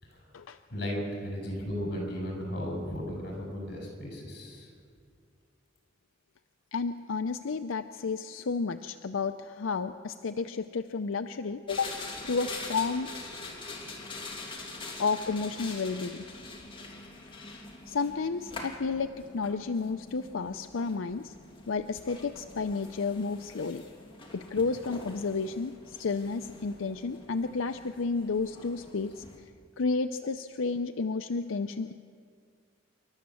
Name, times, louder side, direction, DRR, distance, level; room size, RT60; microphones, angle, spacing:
voice 1, 0.7-4.7, equal, 55° left, 0 dB, 6.8 m, -35 dB
voice 2, 6.7-11.9 12.3-13.1 15.0-16.3 17.9-21.3 21.7-23.9 24.3-29.5 29.8-31.9, left 4 dB, 85° left, 8 dB, 0.6 m, -31 dB
sound 1, 11.7-29.4, left 3 dB, 25° left, 2.8 m, -44 dB
27.5 x 12.5 x 7.7 m, 2.2 s
head